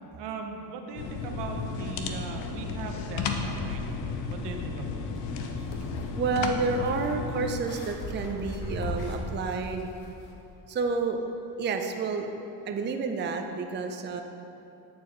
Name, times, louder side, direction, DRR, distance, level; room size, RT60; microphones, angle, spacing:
voice 1, 0.2-3.8 4.3-4.9, right 5 dB, 70° right, 3 dB, 0.8 m, -39 dB
sound 1, 1.0-7.6, left 4 dB, 90° left, 0.6 m, -33 dB
sound 2, 5.2-10.3, left 2 dB, 60° left, 1.0 m, -39 dB
voice 2, 6.2-9.9 10.7-11.2 11.6-12.3 12.7-14.2, right 4 dB, 25° right, 5 dB, 0.4 m, -30 dB
8.5 x 4.5 x 3.1 m, 2.8 s
supercardioid pair, 80°, 43 cm